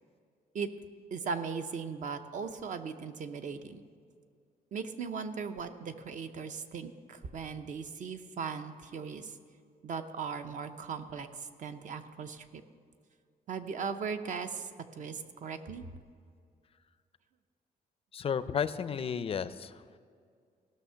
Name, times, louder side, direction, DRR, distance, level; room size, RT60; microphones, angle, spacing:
voice 1, 1.1-3.8 4.7-9.3 9.8-12.6 13.5-15.9, right 5 dB, 50° right, 9 dB, 0.7 m, -38 dB
voice 2, 18.1-20.0, left 7 dB, 35° left, 13 dB, 0.4 m, -33 dB
17.0 x 6.6 x 5.7 m, 2.2 s
cardioid pair, 140°, 16 cm